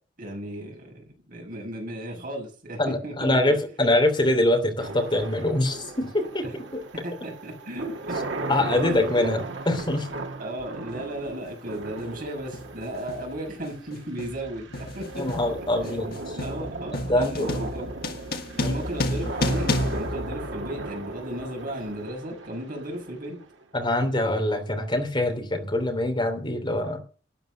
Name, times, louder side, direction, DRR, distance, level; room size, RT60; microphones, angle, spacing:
voice 1, 0.2-3.6 6.4-6.5 6.9-8.2 8.8-9.3 10.4-15.2 15.9-17.9 18.6-23.4, right 1 dB, 50° right, 6.5 m, -35 dB
voice 2, 2.8-6.8 8.5-10.1 15.2-17.5 18.6-18.8 23.7-27.0, left 1 dB, 25° left, 3.0 m, -24 dB
sound 1, 4.8-23.8, right 2 dB, 75° right, 1.9 m, -37 dB
sound 2, 10.9-11.1 12.0-12.3 12.5-21.1, left 1 dB, 55° left, 1.7 m, -31 dB
13.0 x 9.2 x 6.6 m
head